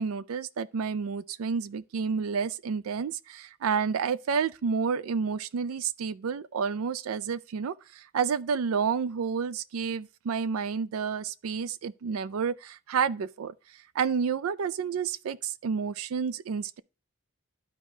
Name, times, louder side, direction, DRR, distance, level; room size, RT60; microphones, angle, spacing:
voice 1, 0.0-13.5 14.0-16.8, right 6 dB, 90° right, 0.4 m, -30 dB
12.0 x 4.6 x 2.7 m
head